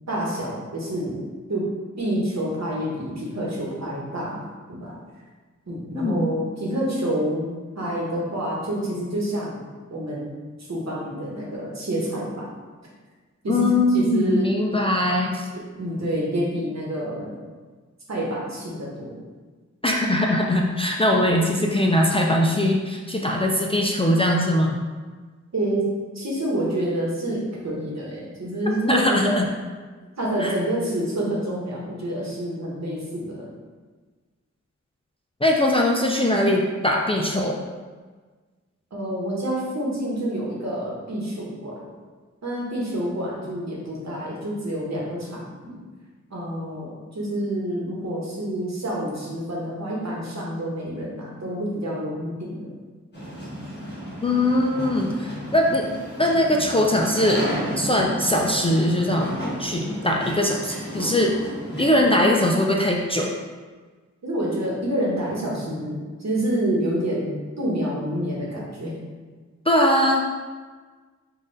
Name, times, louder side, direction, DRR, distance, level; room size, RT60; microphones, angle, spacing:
voice 1, 0.1-1.2 1.5-1.6 2.0-4.4 4.7-5.0 5.7-7.5 7.8-10.3 10.7-12.5 13.4-13.6 13.9-14.5 15.8-17.3 18.1-19.1 25.5-25.8 26.1-29.4 30.2-33.5 38.9-41.9 42.4-45.8 46.3-52.7 64.2-68.9, right 1 dB, 60° right, -4 dB, 1.1 m, -28 dB
voice 2, 5.9-6.3 13.5-15.5 19.8-24.8 28.9-29.5 30.4-30.5 35.4-37.6 54.2-55.9 56.2-57.5 57.8-61.3 61.8-63.3 69.7-70.2, left 1 dB, 20° left, -1 dB, 0.3 m, -21 dB
sound 1, 53.1-62.0, equal, 35° left, 1.2 m, -33 dB
4.0 x 2.5 x 3.8 m, 1.4 s
wide cardioid pair, 100°, 30 cm